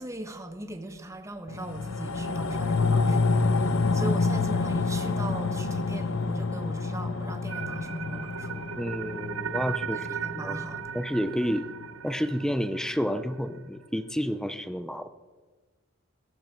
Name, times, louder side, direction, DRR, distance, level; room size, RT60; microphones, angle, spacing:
voice 1, 0.0-8.8 9.9-10.9, right 1 dB, 15° right, 7 dB, 1.1 m, -39 dB
sound 1, 1.5-12.1 12.4-12.5, left 3 dB, 80° left, 0.7 m, -28 dB
sound 2, 7.5-13.6, right 8 dB, 85° right, 0.8 m, -37 dB
voice 2, 8.8-10.1 10.4-10.6 10.9-11.7 12.0-15.1, equal, 5° left, 11 dB, 0.6 m, -30 dB
16.5 x 15.0 x 4.6 m, 1.3 s
head